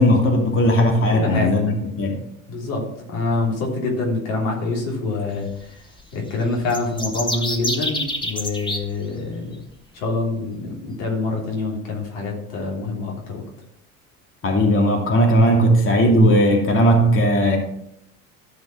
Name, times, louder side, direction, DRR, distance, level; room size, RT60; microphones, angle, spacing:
voice 1, 0.0-2.2 14.4-17.6, equal, 30° left, 2 dB, 2.6 m, -17 dB
voice 2, 1.1-2.0 2.5-5.7 6.1-9.6 9.9-13.4, left 3 dB, 70° left, -2 dB, 3.5 m, -26 dB
sound 1, 6.7-8.8, left 1 dB, 10° left, 3.0 m, -26 dB
14.0 x 5.3 x 6.0 m, 0.75 s
hypercardioid pair, 70°, 44 cm